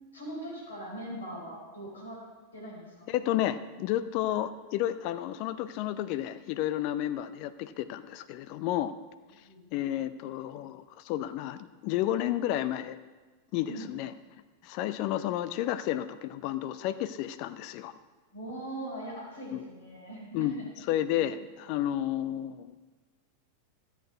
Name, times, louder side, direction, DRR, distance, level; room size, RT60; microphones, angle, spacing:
voice 1, 0.1-2.2 2.5-3.1 9.3-9.9 13.7-13.8 18.3-20.6 21.2-21.3, right 1 dB, 70° left, -3 dB, 4.3 m, -41 dB
voice 2, 3.1-8.9 9.7-13.0 13.5-14.1 14.6-17.9 19.5-19.6 20.3-22.7, left 12 dB, 45° left, 12 dB, 0.5 m, -31 dB
13.0 x 8.2 x 4.7 m, 1.3 s
figure-of-eight pair, 90°, 0 cm